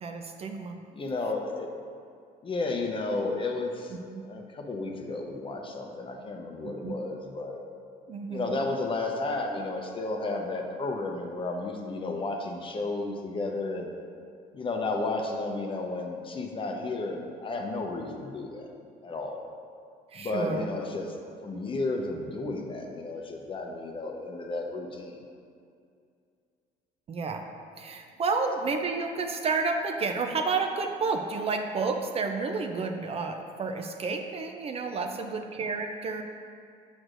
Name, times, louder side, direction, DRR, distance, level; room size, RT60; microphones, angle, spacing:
voice 1, 0.0-0.8 4.1-4.2 6.6-7.0 8.1-8.7 20.1-20.7 27.1-27.4 27.8-36.2, right 4 dB, 35° right, 4 dB, 0.4 m, -31 dB
voice 2, 0.9-1.7 2.4-7.6 8.3-13.9 14.5-18.7 19.0-19.4 20.1-21.2 21.4-25.2, left 2 dB, 30° left, 2 dB, 0.7 m, -33 dB
6.3 x 6.1 x 2.5 m, 2.3 s
cardioid pair, 110°, 17 cm